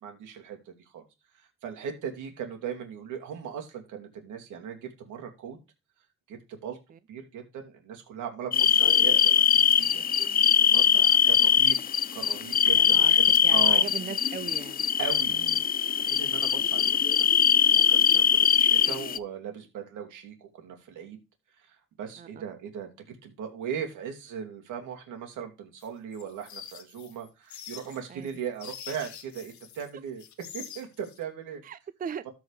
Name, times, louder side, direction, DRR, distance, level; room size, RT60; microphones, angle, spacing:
voice 1, 0.0-1.0 1.4-5.6 6.3-6.8 7.1-10.0 10.4-11.8 12.1-13.9 15.0-15.4 15.9-21.2 21.6-22.9 23.2-31.6 32.2-32.3, right 8 dB, 80° right, 2.5 m, -38 dB
sound 1, 8.5-19.2, left 8 dB, 30° left, 0.4 m, -22 dB
voice 2, 12.8-13.1 13.4-14.8 15.3-15.5 22.2-22.3 28.1-28.3 31.6-32.3, right 7 dB, 30° right, 0.5 m, -38 dB
sound 2, 25.8-29.9 30.2-31.2, left 9 dB, 70° left, 1.2 m, -45 dB
13.0 x 4.7 x 3.3 m
cardioid pair, 90°, 30 cm